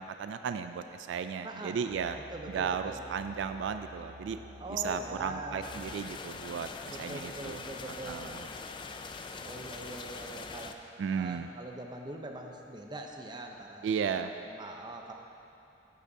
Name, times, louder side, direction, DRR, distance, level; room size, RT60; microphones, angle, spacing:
voice 1, 0.0-2.2 2.5-4.4 4.7-8.5 11.0-11.5 13.8-14.3, right 7 dB, 80° right, 9 dB, 0.3 m, -35 dB
voice 2, 1.4-1.8 2.3-3.0 4.6-5.7 6.9-8.3 9.4-10.8 11.1-13.9 14.1-14.2 14.5-15.1, right 1 dB, 25° right, 2 dB, 0.6 m, -42 dB
sound 1, 1.9-5.9, equal, 60° right, 1.1 m, -49 dB
sound 2, 5.6-10.7, left 4 dB, 25° left, 0.3 m, -43 dB
12.0 x 8.5 x 2.7 m, 2.8 s
head